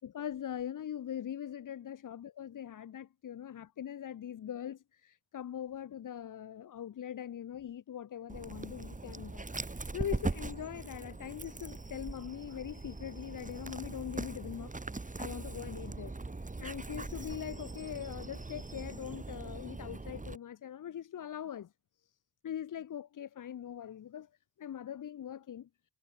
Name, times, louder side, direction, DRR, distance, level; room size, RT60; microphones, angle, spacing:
voice 1, 0.0-16.1 16.6-21.7 22.0-22.1 22.4-24.3 24.6-25.7, left 10 dB, 90° left, 5.8 m, -42 dB
Dog, 8.3-20.4, right 3 dB, 25° right, 6.6 m, -41 dB
cardioid pair, 85°, 30 cm